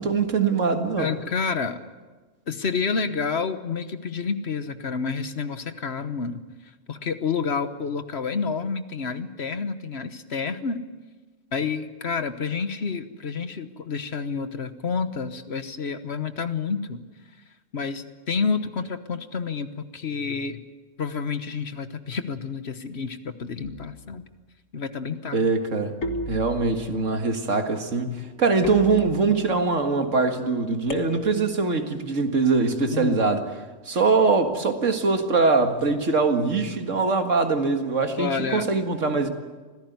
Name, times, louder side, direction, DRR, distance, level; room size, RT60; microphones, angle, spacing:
voice 1, 0.0-1.1 25.3-26.0 26.3-33.4 33.9-39.3, right 4 dB, 75° right, 2.3 m, -22 dB
voice 2, 1.0-1.8 2.5-6.4 6.9-10.8 11.5-17.0 17.7-20.6 21.0-24.3 24.7-25.4 32.9-33.2 38.2-38.7, left 5 dB, 60° left, 1.4 m, -29 dB
sound 1, 23.6-24.2 26.0-27.0 28.6-29.6 30.9-31.6, left 3 dB, 80° left, 2.1 m, -33 dB
25.5 x 16.5 x 9.4 m
omnidirectional pair, 1.3 m